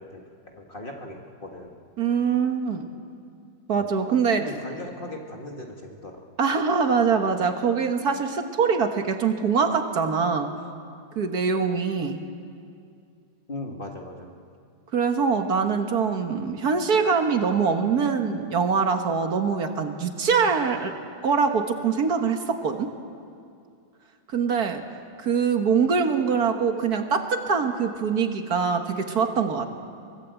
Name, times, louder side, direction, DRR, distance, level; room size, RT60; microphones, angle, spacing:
voice 1, 0.0-1.7 3.7-3.9 4.3-6.2 13.5-14.4, left 1 dB, 30° left, 1 dB, 1.9 m, -38 dB
voice 2, 2.0-2.9 3.7-4.5 6.4-10.5 11.2-12.2 14.9-21.0 21.2-22.9 24.3-24.8 25.2-29.7, right 5 dB, 65° right, 6 dB, 1.8 m, -23 dB
23.5 x 19.0 x 8.2 m, 2.4 s
omnidirectional pair, 1.8 m